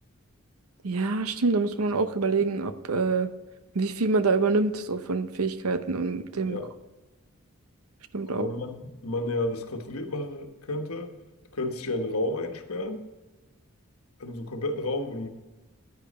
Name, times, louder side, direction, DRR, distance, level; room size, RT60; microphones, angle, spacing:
voice 1, 0.8-3.3 3.7-6.6 8.1-8.5, right 3 dB, 85° right, 11 dB, 0.8 m, -26 dB
voice 2, 8.2-11.1 11.5-13.1 14.2-15.3, left 2 dB, 90° left, 5 dB, 1.3 m, -31 dB
10.0 x 9.0 x 4.2 m, 1.2 s
head